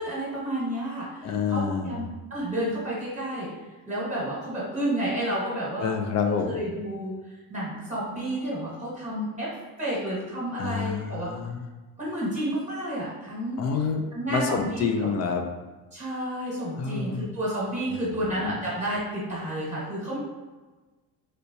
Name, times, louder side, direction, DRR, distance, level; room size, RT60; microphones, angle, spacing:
voice 1, 0.0-2.0 2.3-3.5 3.8-5.9 6.4-7.1 7.5-9.5 9.8-11.3 12.0-13.6 14.1-15.1 15.9-20.2, right 1 dB, 20° right, -7 dB, 1.1 m, -30 dB
voice 2, 1.2-2.0 5.8-6.6 10.6-11.7 13.6-15.4 16.7-17.3 18.4-18.6, left 5 dB, 45° left, 5 dB, 0.4 m, -28 dB
3.3 x 2.8 x 2.7 m, 1.2 s
cardioid pair, 125°, 40 cm